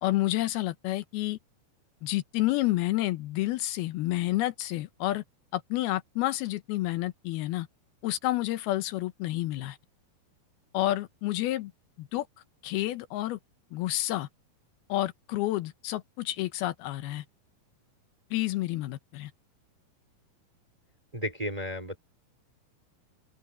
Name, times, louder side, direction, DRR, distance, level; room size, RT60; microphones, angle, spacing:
voice 1, 0.0-1.4 2.0-5.2 5.5-7.7 8.0-9.8 10.7-11.7 12.0-12.3 12.6-13.4 13.7-14.3 14.9-17.2 18.3-19.3, left 16 dB, 80° left, 2.8 m, -29 dB
voice 2, 21.1-22.0, equal, 10° right, 2.6 m, -33 dB
omnidirectional pair, 4.4 m